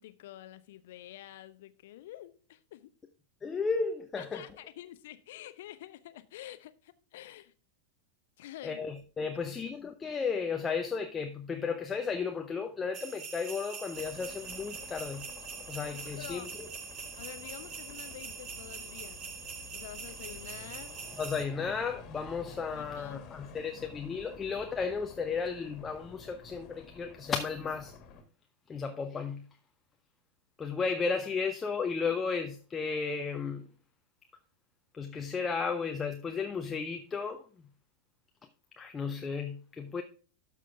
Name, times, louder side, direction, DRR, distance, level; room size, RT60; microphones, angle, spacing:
voice 1, 0.0-2.9 4.2-7.5 8.4-8.8 15.9-16.5 17.2-19.3 19.7-21.0 21.3-21.4 22.7-23.2, left 13 dB, 55° left, 0.8 m, -48 dB
voice 2, 3.4-4.5 8.6-15.3 15.7-16.7 21.2-28.0 28.7-29.5 30.6-33.7 34.9-37.5 38.8-40.0, left 5 dB, 20° left, 0.8 m, -34 dB
sound 1, 12.9-21.4, right 6 dB, 30° right, 1.7 m, -43 dB
sound 2, 13.9-28.2, left 5 dB, 35° left, 2.0 m, -51 dB
12.5 x 6.2 x 3.4 m
figure-of-eight pair, 90°, 0 cm